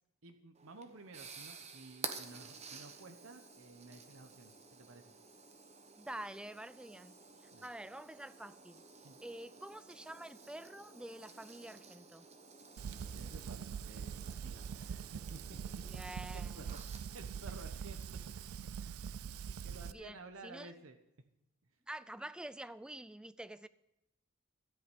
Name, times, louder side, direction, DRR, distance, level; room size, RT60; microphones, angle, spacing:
voice 1, 0.2-5.1 7.5-7.7 9.0-9.2 13.2-15.8 16.3-18.5 18.8-18.9 19.4-21.0, right 3 dB, 70° right, 1.0 m, -54 dB
sound 1, 0.6-18.5, right 5 dB, 30° right, 1.1 m, -52 dB
voice 2, 6.0-7.2 7.4-8.8 9.2-12.3 15.8-16.7 19.9-20.2 20.4-20.7 21.9-23.7, right 1 dB, 5° right, 0.3 m, -47 dB
Fire, 12.8-19.9, right 7 dB, 90° right, 0.4 m, -43 dB
13.0 x 5.7 x 9.1 m
head